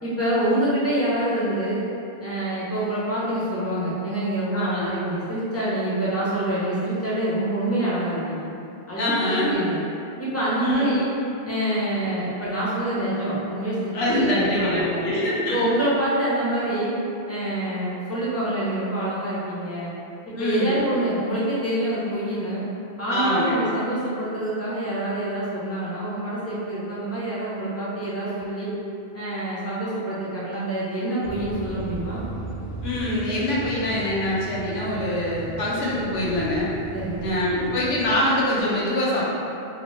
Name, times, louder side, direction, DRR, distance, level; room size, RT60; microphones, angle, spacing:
voice 1, 0.0-1.8 2.2-8.5 8.9-9.8 10.2-11.1 11.4-15.0 15.5-16.9 17.3-19.9 20.3-22.6 23.0-28.7 29.1-32.2 36.9-37.3, right 1 dB, 20° left, -9 dB, 0.5 m, -26 dB
voice 2, 4.5-4.9 8.9-9.6 10.6-10.9 13.9-15.7 20.3-20.8 23.1-23.6 32.8-36.7 37.2-39.3, left 1 dB, 75° left, -6 dB, 0.9 m, -24 dB
sound 1, 31.2-38.2, right 2 dB, 80° right, 0.9 m, -36 dB
2.8 x 2.0 x 3.0 m, 2.7 s
omnidirectional pair, 1.1 m